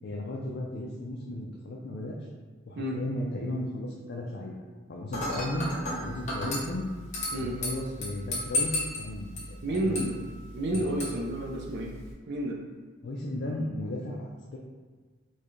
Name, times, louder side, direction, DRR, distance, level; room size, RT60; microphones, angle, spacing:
voice 1, 0.0-2.2 2.7-4.5 4.9-6.9 7.3-8.7 9.0-9.9 10.7-10.8 13.0-14.6, left 1 dB, 50° left, -3 dB, 0.4 m, -35 dB
Dishes pots and pans / Glass, 5.1-12.1, left 1 dB, 35° left, 0.8 m, -35 dB
voice 2, 9.6-10.1 10.5-11.9 12.3-12.6, right 1 dB, 50° right, -1 dB, 0.4 m, -30 dB
4.5 x 2.2 x 3.1 m, 1.5 s
head